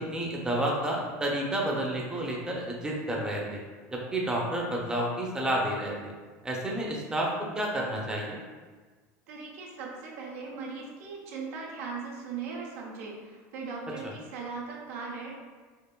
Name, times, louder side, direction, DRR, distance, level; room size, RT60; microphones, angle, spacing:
voice 1, 0.0-3.6 3.9-6.1 6.4-8.4, right 1 dB, 10° right, -2 dB, 0.6 m, -30 dB
voice 2, 9.3-15.4, right 4 dB, 80° right, -2 dB, 0.7 m, -39 dB
4.4 x 2.4 x 2.2 m, 1.4 s
supercardioid pair, 100°, 8 cm